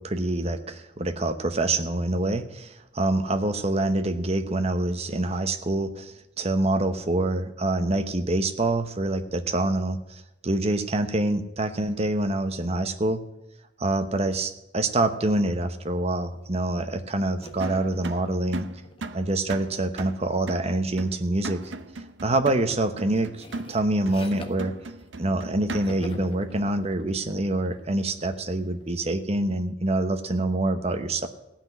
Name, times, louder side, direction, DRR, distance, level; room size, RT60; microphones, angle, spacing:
voice 1, 0.0-13.2 13.8-18.7 19.1-21.6 22.2-24.7 25.2-31.3, right 2 dB, 35° right, 8 dB, 0.9 m, -26 dB
sound 1, 17.4-20.7 21.6-21.9 22.3-25.5 25.8-29.4, equal, 30° left, 1.2 m, -48 dB
sound 2, 17.6-26.2, right 2 dB, 75° right, 0.7 m, -38 dB
16.0 x 6.0 x 9.3 m, 0.92 s
head